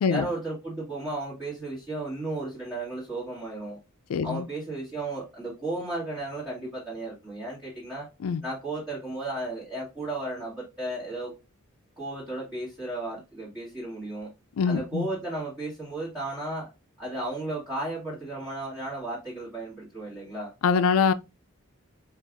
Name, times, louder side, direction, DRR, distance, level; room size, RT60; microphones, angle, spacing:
voice 1, 0.1-3.8 4.2-8.1 8.4-11.3 12.0-14.3 14.6-16.7 17.0-20.5, right 2 dB, 10° right, 1.4 m, -34 dB
voice 2, 4.1-4.5 8.2-8.4 14.6-15.1 20.6-21.1, left 5 dB, 75° left, 0.3 m, -23 dB
4.5 x 2.4 x 2.4 m
head